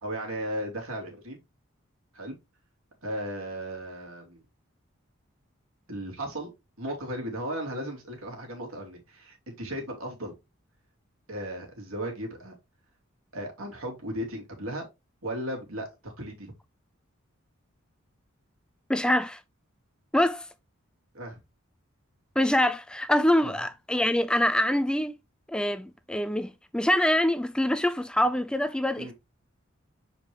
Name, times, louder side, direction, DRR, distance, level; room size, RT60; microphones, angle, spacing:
voice 1, 0.0-1.4 2.1-2.3 3.0-4.4 5.9-6.5 6.8-10.3 11.3-12.5 13.3-14.9 15.2-16.5 21.1-21.4 23.4-23.6 28.9-29.1, right 1 dB, 85° right, 2.7 m, -36 dB
voice 2, 18.9-19.4 20.1-20.5 22.4-25.1 25.5-29.1, left 1 dB, 5° left, 0.3 m, -25 dB
6.2 x 5.0 x 3.4 m
head